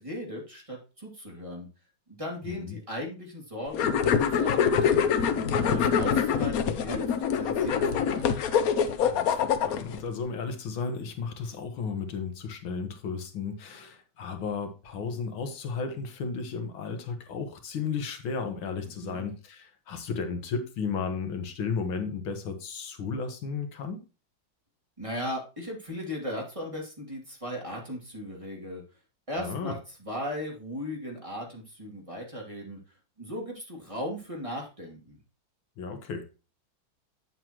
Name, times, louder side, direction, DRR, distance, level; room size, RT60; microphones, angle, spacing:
voice 1, 0.0-1.7 2.1-5.0 5.6-8.4 18.8-19.3 25.0-28.8 29.3-32.8 33.2-35.2, equal, 15° right, -2 dB, 2.6 m, -37 dB
voice 2, 2.5-2.8 5.6-5.9 9.0-24.0 29.4-29.7 35.8-36.3, left 5 dB, 85° left, 7 dB, 2.1 m, -34 dB
sound 1, 3.7-10.0, left 7 dB, 60° left, 1.0 m, -25 dB
9.2 x 7.6 x 3.0 m, 0.31 s
omnidirectional pair, 2.1 m